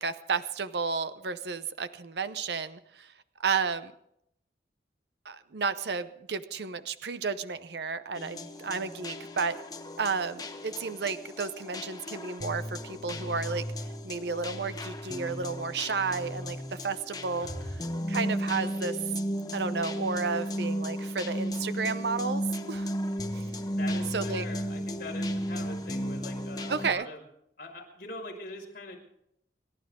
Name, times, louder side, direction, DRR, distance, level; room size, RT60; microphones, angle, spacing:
voice 1, 0.0-3.1 3.4-3.9 5.2-9.6 10.0-13.7 14.0-17.8 18.1-19.0 19.5-22.4 22.7-22.9 23.3-23.4 24.1-24.5 26.7-27.1, right 5 dB, 70° right, 12 dB, 0.7 m, -32 dB
sound 1, 8.1-26.9, equal, 20° left, 1.1 m, -34 dB
voice 2, 17.4-17.7 23.7-27.2 27.6-29.0, left 2 dB, 55° left, -1 dB, 5.8 m, -42 dB
29.0 x 12.0 x 3.7 m, 0.74 s
head